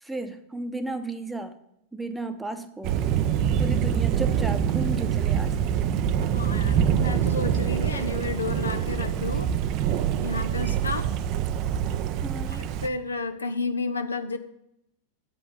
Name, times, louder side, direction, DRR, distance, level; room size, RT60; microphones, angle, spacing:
voice 1, 0.0-1.5 1.9-3.0 3.6-6.0 12.2-12.7, right 2 dB, 5° right, 9 dB, 0.9 m, -34 dB
Thunder, 2.8-12.9, right 9 dB, 40° right, 0.5 m, -25 dB
voice 2, 6.2-9.5 9.8-9.9 10.2-11.1 12.5-14.4, left 3 dB, 75° left, 9 dB, 0.7 m, -31 dB
7.7 x 6.5 x 7.7 m, 0.78 s
figure-of-eight pair, 90°, 0 cm